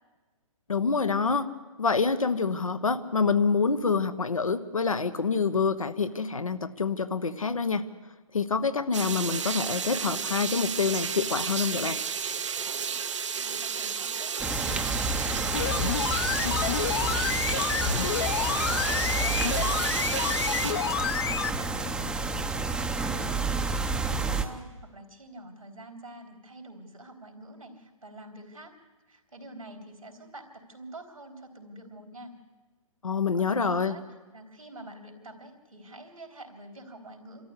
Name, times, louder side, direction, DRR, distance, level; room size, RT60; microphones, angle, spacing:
voice 1, 0.7-1.5 1.8-7.8 8.3-12.0 33.0-34.0, left 5 dB, 75° left, 10 dB, 1.2 m, -26 dB
sound 1, 8.9-20.7, right 7 dB, 60° right, 1.0 m, -32 dB
voice 2, 13.4-20.1 20.5-28.7 29.1-32.3 33.3-34.0 34.3-37.5, right 1 dB, 80° right, 3 dB, 3.7 m, -47 dB
sound 2, 14.4-24.4, right 3 dB, 5° right, 0.8 m, -30 dB
sound 3, 15.5-21.6 21.9-22.0, left 9 dB, 45° left, 0.9 m, -29 dB
26.5 x 13.5 x 8.3 m, 1.3 s
figure-of-eight pair, 125°, 18 cm